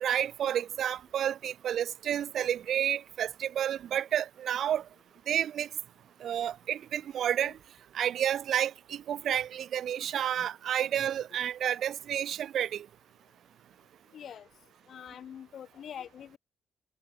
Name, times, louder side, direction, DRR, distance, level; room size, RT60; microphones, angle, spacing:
voice 1, 0.0-4.8 5.3-5.7 6.2-7.5 7.9-12.9, right 10 dB, 70° right, 0.4 m, -30 dB
voice 2, 14.1-14.5 14.9-16.4, left 9 dB, 60° left, 0.7 m, -44 dB
cardioid pair, 90°, 0 cm